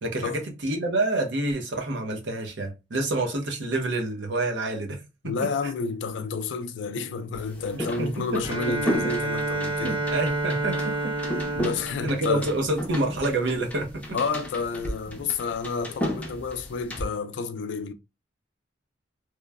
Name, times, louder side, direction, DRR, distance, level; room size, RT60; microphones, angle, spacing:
voice 1, 0.0-5.3 7.7-8.4 9.8-11.1 11.5-11.7 12.0-14.0, right 2 dB, 70° right, 0.7 m, -28 dB
voice 2, 5.2-10.0 11.6-12.5 14.1-17.9, left 4 dB, 75° left, 0.4 m, -30 dB
sound 1, 7.3-17.0, equal, 10° left, 0.5 m, -34 dB
Bowed string instrument, 8.4-13.2, right 2 dB, 25° right, 1.0 m, -30 dB
3.0 x 2.1 x 2.2 m
head